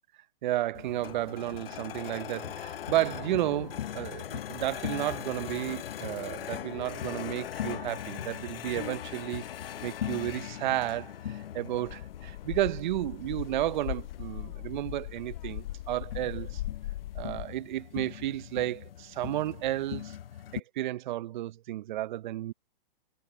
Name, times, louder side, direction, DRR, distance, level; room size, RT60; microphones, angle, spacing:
voice 1, 0.4-9.5 9.8-16.6 17.1-20.2 20.5-22.5, right 14 dB, 55° right, 0.7 m, -32 dB
sound 1, 0.7-20.6, left 10 dB, 75° left, 0.9 m, -40 dB
sound 2, 11.8-17.5, left 15 dB, 50° left, 1.0 m, -39 dB
hypercardioid pair, 145°, 29 cm